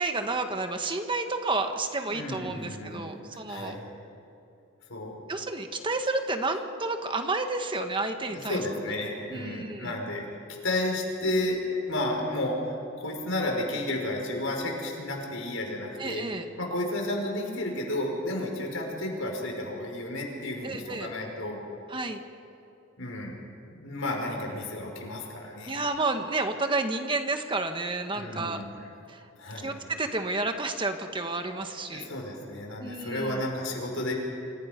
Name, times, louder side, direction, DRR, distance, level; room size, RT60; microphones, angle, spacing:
voice 1, 0.0-3.8 5.3-8.6 9.3-9.9 16.0-16.4 20.6-21.1 21.9-22.2 25.6-28.6 29.1-29.2 29.6-32.1 32.8-33.4, right 3 dB, 25° right, 6 dB, 1.5 m, -30 dB
voice 2, 2.1-3.8 4.9-5.2 8.2-10.3 10.6-16.2 16.6-21.6 23.0-23.4 23.7-25.8 28.1-28.9 29.4-29.7 31.9-34.1, left 1 dB, 75° left, 0 dB, 5.5 m, -32 dB
28.0 x 27.0 x 5.3 m, 2.8 s
head